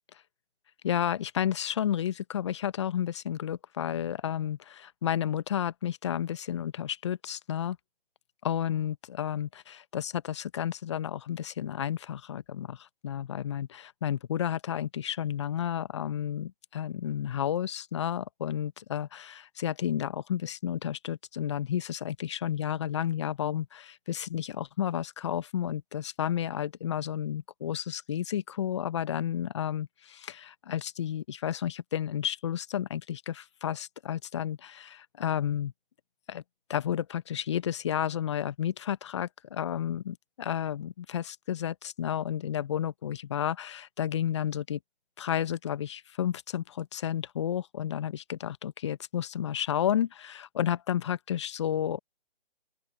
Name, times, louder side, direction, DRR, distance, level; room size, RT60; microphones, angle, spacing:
voice 1, 0.8-7.8 8.4-35.7 36.3-36.4 36.7-44.8 45.2-52.0, left 10 dB, 30° left, 1.1 m, -32 dB
open air
figure-of-eight pair, 145°, 30 cm